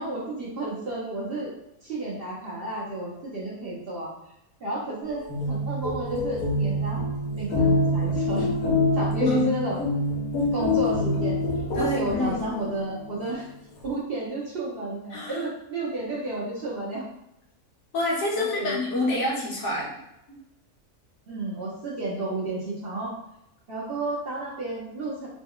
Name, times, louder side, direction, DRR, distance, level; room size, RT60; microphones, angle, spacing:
voice 1, 0.0-1.5 1.8-4.1 4.6-7.0 7.4-8.5 8.9-9.8 10.5-11.4 11.8-13.5 13.8-17.0 18.3-18.8 19.1-19.2 21.3-23.1 23.7-25.3, right 2 dB, 50° right, -6 dB, 0.7 m, -32 dB
sound 1, 5.1-12.8, left 2 dB, 80° left, 1.2 m, -25 dB
voice 2, 11.7-12.4 15.1-15.4 17.9-20.0 20.3-20.4, left 1 dB, 60° left, -3 dB, 1.1 m, -28 dB
3.1 x 2.1 x 3.6 m, 0.86 s
omnidirectional pair, 1.5 m